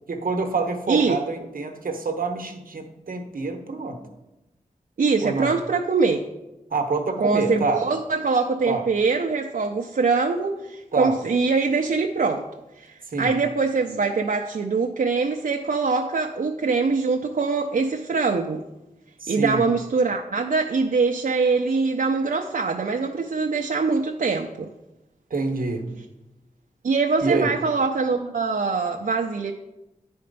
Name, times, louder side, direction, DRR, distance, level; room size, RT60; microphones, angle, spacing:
voice 1, 0.1-4.0 5.2-5.5 6.7-7.8 8.7-8.9 10.9-11.2 13.1-13.3 19.2-19.6 25.3-25.9 27.2-27.5, right 3 dB, 85° right, 5 dB, 0.9 m, -26 dB
voice 2, 5.0-6.3 7.2-12.4 12.8-18.6 19.3-24.7 26.8-29.5, right 4 dB, 70° right, 3 dB, 0.5 m, -23 dB
9.6 x 4.3 x 5.3 m, 0.97 s
wide cardioid pair, 60°, 14 cm